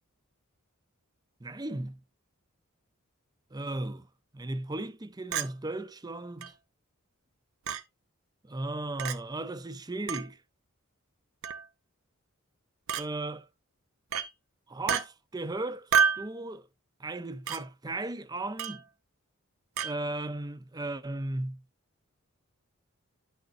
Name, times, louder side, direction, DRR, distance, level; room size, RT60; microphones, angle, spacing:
voice 1, 1.4-2.0 3.5-4.1 4.3-6.5 8.4-10.4 13.0-13.5 14.7-16.7 17.0-18.8 19.8-21.6, right 2 dB, 20° right, 0.5 m, -36 dB
Chink clink, 5.3-5.5 6.4-6.5 7.7-7.8 9.0-9.2 10.1-10.3 11.4-11.7 12.9-13.1 14.1-14.3 14.9-15.0 15.9-16.3 17.5-17.6 18.6-18.8 19.8-19.9, right 6 dB, 65° right, 0.7 m, -28 dB
10.5 x 6.4 x 2.6 m
head